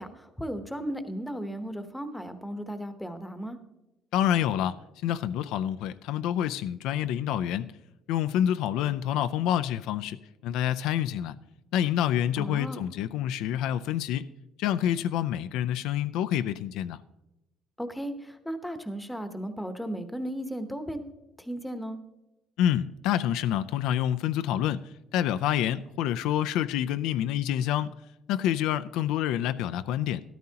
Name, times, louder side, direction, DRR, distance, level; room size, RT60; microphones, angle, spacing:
voice 1, 0.0-3.6 12.4-12.8 17.8-21.0 21.4-22.0, equal, 5° left, 0.9 m, -35 dB
voice 2, 4.1-4.8 5.0-7.7 8.1-11.4 11.7-14.2 14.6-17.0 22.6-27.9 28.3-30.2, left 11 dB, 85° left, 0.4 m, -27 dB
13.0 x 13.0 x 2.9 m
cardioid pair, 140°, 0 cm